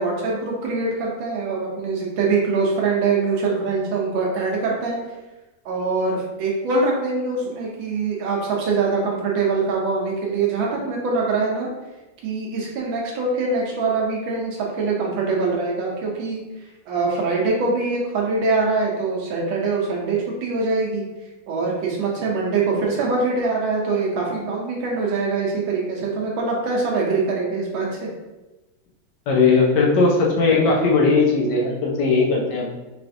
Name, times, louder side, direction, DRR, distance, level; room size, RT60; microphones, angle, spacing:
voice 1, 0.0-5.0 5.6-11.7 12.2-16.4 16.9-21.1 21.5-28.1, right 4 dB, 85° right, -2 dB, 1.5 m, -23 dB
voice 2, 29.3-32.7, left 4 dB, 65° left, -2 dB, 1.4 m, -18 dB
4.7 x 3.3 x 2.5 m, 1.1 s
omnidirectional pair, 2.1 m